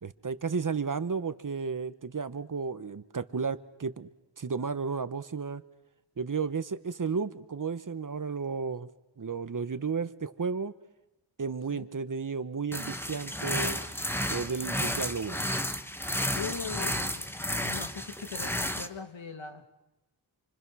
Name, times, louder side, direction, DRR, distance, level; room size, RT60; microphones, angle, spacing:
voice 1, 0.0-4.1 4.4-5.6 6.2-8.9 9.2-10.7 11.4-13.8 14.3-15.4, right 5 dB, 45° right, 13 dB, 1.1 m, -33 dB
sound 1, 12.7-18.9, equal, 5° left, 1.3 m, -32 dB
voice 2, 16.3-17.3 17.6-19.7, left 6 dB, 80° left, 6 dB, 2.7 m, -40 dB
28.5 x 25.0 x 6.2 m, 0.97 s
wide cardioid pair, 85°, 45 cm